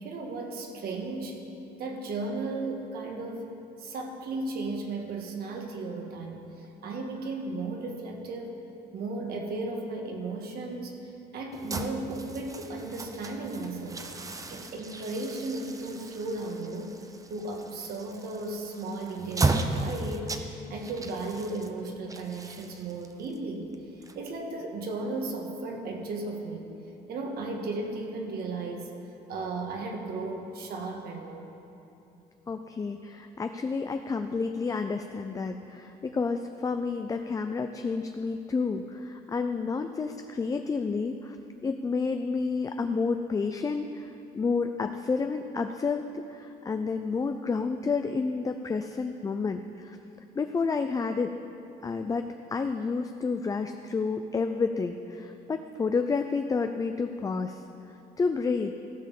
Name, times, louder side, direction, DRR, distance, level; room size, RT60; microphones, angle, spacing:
voice 1, 0.0-1.5 1.8-3.5 3.8-8.6 8.9-11.0 11.3-17.0 17.3-23.7 24.0-26.7 27.1-28.9 29.3-31.5, right 3 dB, 65° right, 2 dB, 1.7 m, -35 dB
sound 1, 11.5-24.6, right 3 dB, 20° right, 0.7 m, -35 dB
voice 2, 32.5-41.4 41.6-50.0 50.3-51.3 51.8-57.6 58.2-58.7, left 4 dB, 20° left, 7 dB, 0.4 m, -30 dB
15.5 x 5.4 x 7.1 m, 2.9 s
cardioid pair, 110°, 17 cm